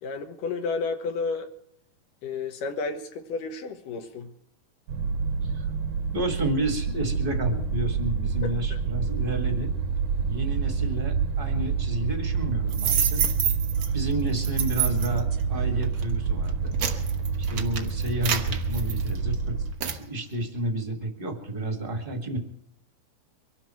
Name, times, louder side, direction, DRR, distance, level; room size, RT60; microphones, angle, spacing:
voice 1, 0.0-1.5 2.2-4.3 8.4-8.8, left 4 dB, 65° left, 6 dB, 2.7 m, -32 dB
sound 1, 4.9-19.7, right 5 dB, 65° right, 2.1 m, -28 dB
voice 2, 6.1-9.7 10.3-13.3 13.9-16.8 17.4-19.6 19.8-22.4, right 1 dB, 25° right, 4 dB, 1.2 m, -31 dB
sound 2, 12.7-13.9 14.4-15.2 15.8-16.0 16.5-19.3 19.8-20.0, right 8 dB, 85° right, 1.1 m, -28 dB
24.0 x 12.0 x 4.5 m, 0.69 s
omnidirectional pair, 4.4 m